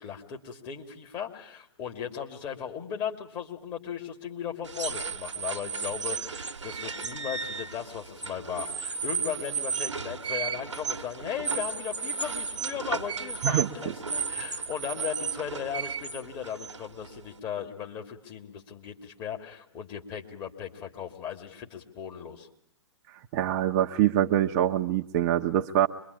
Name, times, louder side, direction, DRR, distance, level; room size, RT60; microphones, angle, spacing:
voice 1, 0.0-22.5, left 8 dB, 30° left, 3 dB, 2.9 m, -37 dB
sound 1, 4.6-17.4, right 5 dB, 75° right, 1.3 m, -34 dB
voice 2, 23.3-25.9, right 11 dB, 35° right, 4 dB, 1.0 m, -24 dB
25.5 x 23.0 x 8.6 m, 0.66 s
figure-of-eight pair, 120°, 15 cm